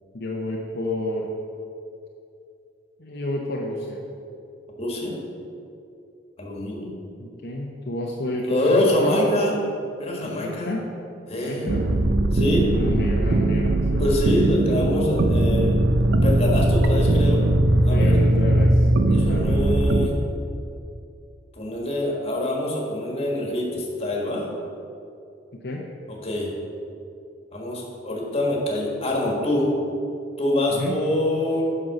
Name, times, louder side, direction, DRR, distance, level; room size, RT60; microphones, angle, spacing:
voice 1, 0.1-1.3 3.0-4.0 7.2-8.6 9.0-9.2 10.2-10.9 11.3-11.8 12.7-14.1 17.9-19.7 25.6-25.8 30.7-30.9, left 1 dB, 60° left, -2 dB, 0.8 m, -30 dB
voice 2, 4.8-5.2 6.4-6.9 8.3-9.6 10.0-10.7 11.3-11.7 12.3-12.7 14.0-15.8 16.2-17.4 17.8-18.1 19.1-20.1 21.5-24.5 26.1-26.5 27.5-29.7 30.4-31.6, left 1 dB, 35° left, -2 dB, 1.7 m, -25 dB
sound 1, 11.7-20.1, right 1 dB, 60° right, 0.6 m, -20 dB
7.7 x 5.5 x 6.1 m, 2.6 s
head